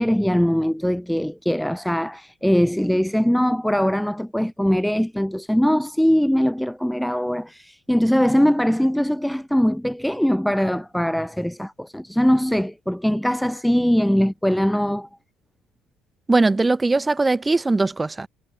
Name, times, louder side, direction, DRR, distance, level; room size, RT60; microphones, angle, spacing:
voice 1, 0.0-15.1, equal, ahead, 0.5 m, -21 dB
voice 2, 16.3-18.3, right 3 dB, 15° right, 1.0 m, -20 dB
cardioid pair, 130°, 0 cm